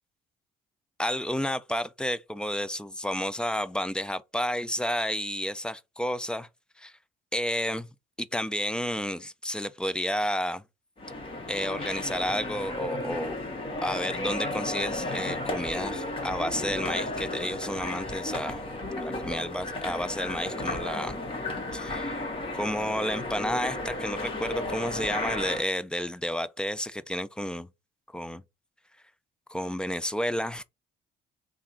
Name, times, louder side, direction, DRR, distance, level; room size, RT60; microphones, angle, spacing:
voice 1, 1.0-6.5 6.8-6.9 7.3-7.9 8.2-10.6 11.5-13.4 13.8-18.6 19.0-21.2 21.7-22.2 22.5-27.7 28.1-28.4 29.5-30.6, equal, 5° left, 0.3 m, -31 dB
sound 1, 11.0-25.6, left 2 dB, 30° left, 1.6 m, -34 dB
3.6 x 2.5 x 4.2 m
cardioid pair, 110°, 17 cm